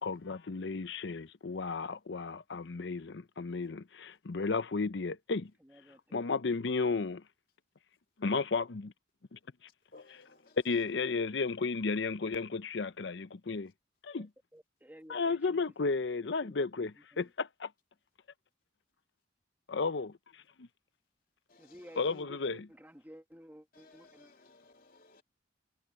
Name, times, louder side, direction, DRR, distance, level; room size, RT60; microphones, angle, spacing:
voice 1, 0.0-5.5 6.1-7.2 8.2-8.9 9.3-9.4 10.6-13.7 14.0-14.3 15.1-16.9 17.2-17.7 19.7-20.7 22.0-22.6, left 4 dB, 70° left, 0.7 m, -33 dB
voice 2, 5.6-6.2 14.2-14.3 14.5-16.0 16.4-17.3 21.6-24.3, equal, 10° right, 1.6 m, -54 dB
voice 3, 9.9-10.6 21.5-22.2 23.7-25.2, left 3 dB, 50° left, 3.0 m, -59 dB
head